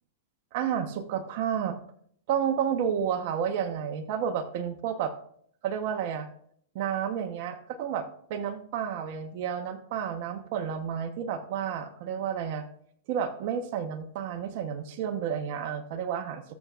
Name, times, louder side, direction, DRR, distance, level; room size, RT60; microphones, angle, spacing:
voice 1, 0.5-1.8 2.3-5.1 5.6-6.3 6.7-12.6 13.1-16.4, right 8 dB, 50° right, 6 dB, 1.0 m, -31 dB
20.0 x 6.8 x 2.5 m, 0.65 s
hypercardioid pair, 140°, 0 cm